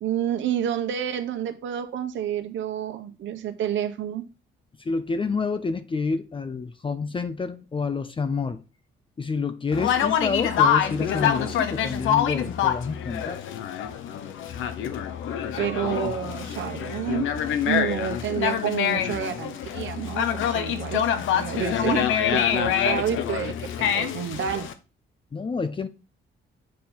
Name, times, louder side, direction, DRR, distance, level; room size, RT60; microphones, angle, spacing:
voice 1, 0.0-4.2 15.6-17.3 17.6-21.0 21.3-24.7, right 10 dB, 70° right, 1.0 m, -29 dB
voice 2, 4.8-8.6 9.2-13.4 25.3-25.9, left 4 dB, 25° left, 0.6 m, -28 dB
Conversation, 9.7-24.7, left 9 dB, 85° left, 0.8 m, -26 dB
7.5 x 3.9 x 4.3 m
cardioid pair, 90°, 20 cm